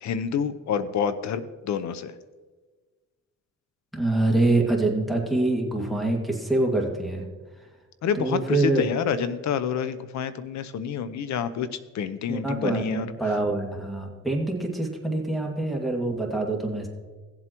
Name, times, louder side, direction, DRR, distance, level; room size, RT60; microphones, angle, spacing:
voice 1, 0.0-2.1 8.0-11.7 11.9-13.1, left 7 dB, 65° left, 13 dB, 0.8 m, -28 dB
voice 2, 3.9-7.2 8.2-8.8 12.3-16.9, right 2 dB, ahead, 1 dB, 2.0 m, -25 dB
17.0 x 7.8 x 3.0 m, 1.4 s
cardioid pair, 90°, 30 cm